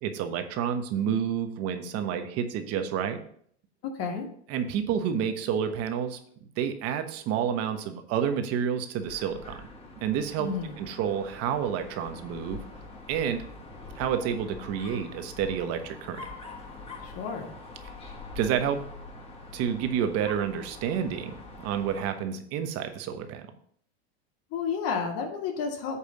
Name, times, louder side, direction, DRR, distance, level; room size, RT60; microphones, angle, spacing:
voice 1, 0.0-3.2 4.5-6.2 6.6-9.6 10.0-10.5 10.8-12.6 13.1-13.4 14.0-16.2 18.3-18.8 19.5-23.4, right 8 dB, 50° right, 7 dB, 1.1 m, -29 dB
voice 2, 3.9-4.3 10.4-10.7 17.0-17.5 24.5-26.0, left 5 dB, 50° left, 2 dB, 1.6 m, -31 dB
Dog, 9.0-22.3, left 3 dB, 20° left, 1.4 m, -44 dB
8.4 x 3.3 x 6.6 m, 0.62 s
supercardioid pair, 125°, 32 cm